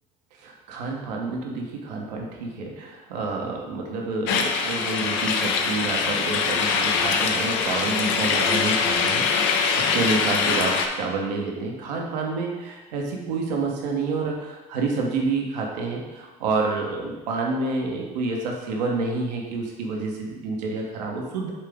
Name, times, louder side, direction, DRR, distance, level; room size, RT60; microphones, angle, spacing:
voice 1, 0.4-21.5, right 3 dB, 75° right, 0 dB, 1.2 m, -28 dB
sound 1, 4.3-10.9, left 5 dB, 60° left, 0.7 m, -23 dB
7.4 x 3.7 x 3.6 m, 1.2 s
hypercardioid pair, 75°, 21 cm